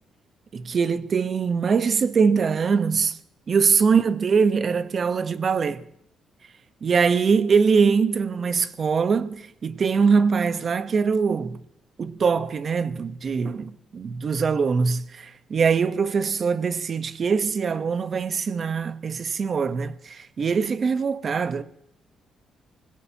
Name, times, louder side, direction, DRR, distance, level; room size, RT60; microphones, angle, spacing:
voice 1, 0.5-3.2 3.5-5.8 6.8-11.6 12.0-21.6, right 5 dB, 45° right, 1.0 m, -22 dB
24.5 x 16.5 x 2.9 m
cardioid pair, 90°, 0 cm